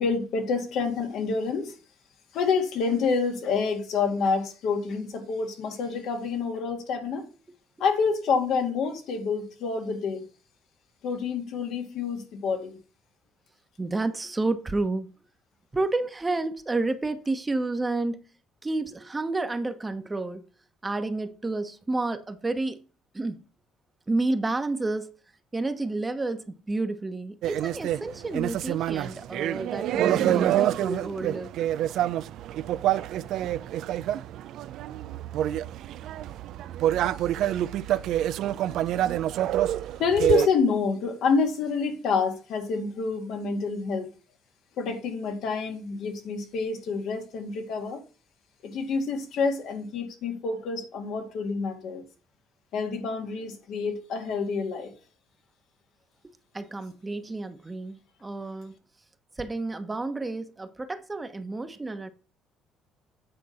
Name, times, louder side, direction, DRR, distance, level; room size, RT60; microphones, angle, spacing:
voice 1, 0.0-1.7 2.3-7.2 7.8-10.2 11.0-12.7 40.0-44.1 44.8-48.0 48.6-52.0 52.7-54.9, left 5 dB, 65° left, 2.0 m, -28 dB
voice 2, 13.8-15.1 15.7-18.2 18.6-20.5 20.8-22.8 23.1-23.4 24.1-25.1 25.5-31.5 56.5-58.8 59.4-62.1, right 2 dB, 20° right, 1.1 m, -30 dB
sound 1, 27.4-40.5, right 12 dB, 70° right, 0.4 m, -27 dB
8.7 x 3.8 x 5.8 m
hypercardioid pair, 65°, 0 cm